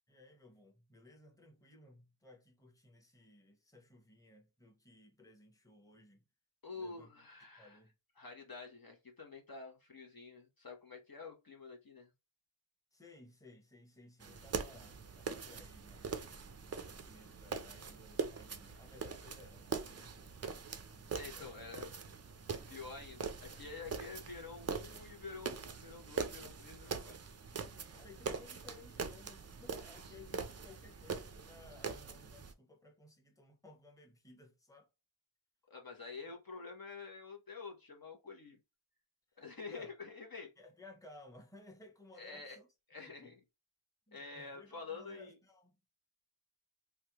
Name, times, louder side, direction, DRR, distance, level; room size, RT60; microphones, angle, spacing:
voice 1, 0.1-6.2 6.7-7.1 7.5-7.9 12.9-16.3 16.6-20.3 21.3-21.8 27.9-34.9 39.3-39.9 40.6-42.7 43.0-43.4 44.1-45.8, left 2 dB, 5° left, 0.9 m, -59 dB
voice 2, 6.6-7.8 8.2-12.1 21.1-21.9 22.7-27.2 35.7-38.6 39.4-40.5 42.2-42.6 42.9-43.4 44.1-45.3, left 4 dB, 45° left, 0.8 m, -48 dB
sound 1, 14.2-32.5, right 5 dB, 35° right, 0.4 m, -43 dB
3.2 x 2.2 x 2.8 m
cardioid pair, 40°, 49 cm